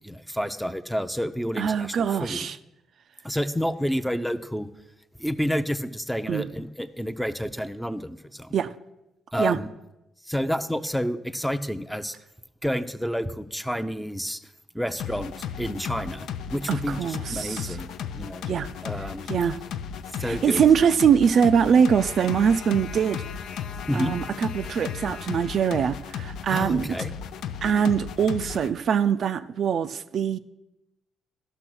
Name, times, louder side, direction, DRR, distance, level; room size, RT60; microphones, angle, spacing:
voice 1, 0.0-2.5 3.2-4.7 5.2-8.5 9.3-9.7 10.3-12.2 12.6-14.4 14.7-18.5 18.8-19.3 20.2-20.6 23.9-24.1 26.5-27.1, equal, ahead, 0.5 m, -29 dB
voice 2, 1.6-2.6 6.3-6.5 8.5-8.7 9.4-9.6 16.7-17.8 18.5-18.7 19.3-19.6 20.2-23.2 23.9-27.0 27.6-30.4, right 7 dB, 60° right, 0.4 m, -23 dB
sound 1, 15.0-28.7, left 8 dB, 80° left, 0.5 m, -35 dB
12.0 x 5.7 x 6.1 m
cardioid pair, 90°, 0 cm